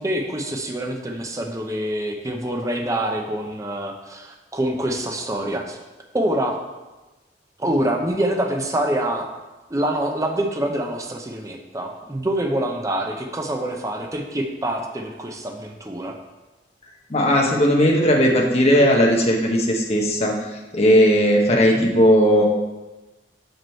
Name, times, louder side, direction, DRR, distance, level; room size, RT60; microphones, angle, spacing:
voice 1, 0.0-5.8 6.1-6.6 7.6-9.3 9.7-16.2 21.5-21.9, right 1 dB, 20° right, 2 dB, 0.7 m, -26 dB
voice 2, 17.1-20.3 20.7-22.5, equal, 35° left, 0 dB, 1.1 m, -17 dB
6.0 x 5.3 x 4.5 m, 1.1 s
head